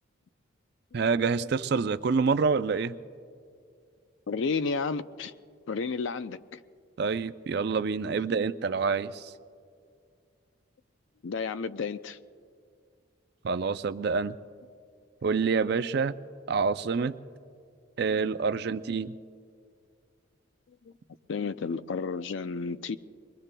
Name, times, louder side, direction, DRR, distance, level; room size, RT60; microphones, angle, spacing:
voice 1, 0.9-3.0 7.0-9.3 13.4-14.4 15.2-16.1 16.5-17.1 18.0-19.1, right 5 dB, 50° right, 0.4 m, -27 dB
voice 2, 4.3-5.3 5.7-6.6 11.2-12.2 18.1-18.2 20.8-20.9 21.3-23.0, left 4 dB, 70° left, 0.4 m, -32 dB
26.5 x 21.5 x 2.2 m
head